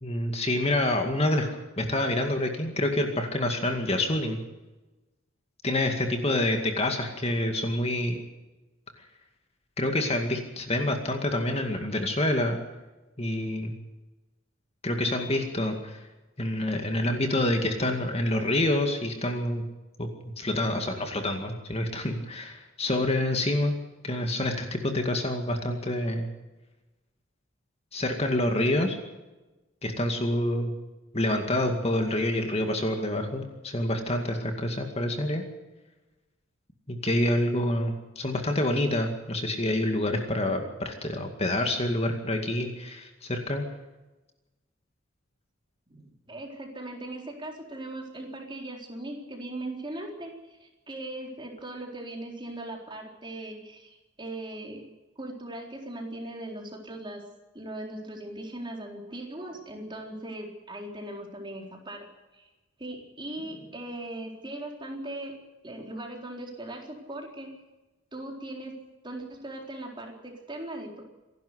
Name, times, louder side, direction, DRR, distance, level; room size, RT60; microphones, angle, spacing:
voice 1, 0.0-4.4 5.6-8.2 9.8-12.6 13.2-13.7 14.8-16.0 16.4-19.6 20.0-20.1 20.4-23.7 24.0-26.3 27.9-29.0 29.8-30.7 31.1-35.4 36.9-43.6, left 1 dB, 30° left, 4 dB, 2.2 m, -27 dB
voice 2, 45.9-54.8 55.2-57.2 57.5-62.1 62.3-62.5 62.8-65.4 65.6-67.5 68.1-68.8 69.0-71.0, right 1 dB, 25° right, 1 dB, 4.1 m, -39 dB
27.0 x 12.0 x 8.2 m, 1.1 s
head